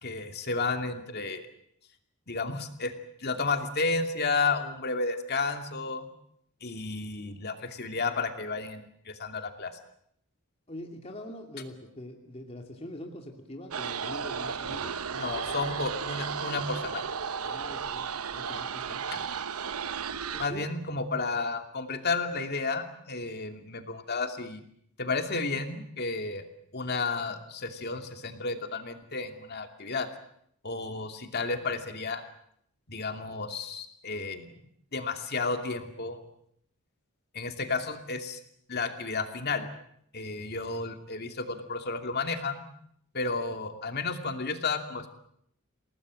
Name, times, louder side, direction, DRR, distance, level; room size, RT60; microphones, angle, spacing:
voice 1, 0.0-1.4 2.3-2.9 3.2-6.1 6.6-9.7 15.1-17.1 19.1-19.2 20.4-24.6 25.0-26.4 26.7-30.1 30.6-32.2 32.9-34.6 34.9-36.2 37.3-38.4 38.7-39.7 40.1-42.6 43.1-45.1, left 3 dB, 50° left, 5 dB, 2.7 m, -32 dB
voice 2, 10.7-15.0 17.4-19.0 20.3-20.7, left 1 dB, 30° left, 2 dB, 2.6 m, -43 dB
sound 1, 13.7-20.5, right 6 dB, 85° right, 1.0 m, -34 dB
28.5 x 19.0 x 7.7 m, 0.70 s
head